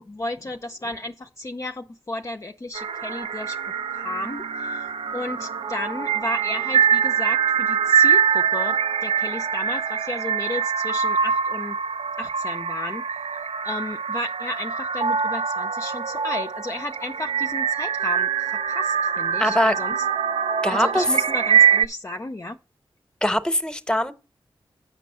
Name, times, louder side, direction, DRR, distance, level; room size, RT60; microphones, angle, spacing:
voice 1, 0.0-3.6 3.9-11.8 12.2-13.0 13.6-20.0 20.7-22.6, left 2 dB, 30° left, 0.5 m, -33 dB
sound 1, 2.7-21.9, right 7 dB, 75° right, 0.4 m, -24 dB
voice 2, 19.4-19.7 20.6-21.0 23.2-24.1, left 1 dB, 10° left, 0.9 m, -22 dB
8.4 x 5.3 x 5.5 m
cardioid pair, 40°, 10 cm